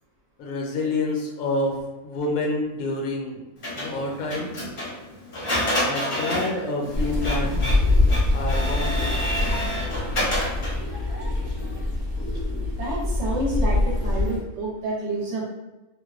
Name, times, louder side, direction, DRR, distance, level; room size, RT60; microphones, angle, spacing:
voice 1, 0.4-3.4 3.7-4.5 5.8-7.8 8.3-9.3, left 2 dB, 80° left, -1 dB, 1.0 m, -28 dB
Printer, 3.6-10.9, equal, 50° left, 0.3 m, -29 dB
sound 1, 6.9-14.4, left 2 dB, 30° right, 0.9 m, -24 dB
voice 2, 12.5-15.4, right 1 dB, 65° right, -4 dB, 0.8 m, -29 dB
2.5 x 2.1 x 2.3 m, 1.1 s
omnidirectional pair, 1.5 m